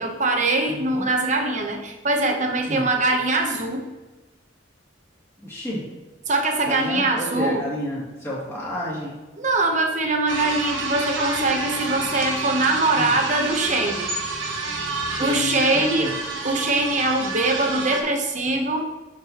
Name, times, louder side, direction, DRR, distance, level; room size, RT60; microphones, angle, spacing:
voice 1, 0.0-3.9 6.3-7.6 9.4-14.1 15.2-16.1 16.4-18.9, right 2 dB, 40° right, 3 dB, 0.9 m, -22 dB
voice 2, 0.7-1.0 2.7-2.9 5.4-5.9 6.6-9.2 13.0-13.1 15.0-16.1, left 1 dB, 15° left, -7 dB, 2.5 m, -30 dB
sound 1, 10.3-18.0, right 3 dB, 80° right, 1.1 m, -29 dB
11.0 x 4.6 x 3.0 m, 1.2 s
head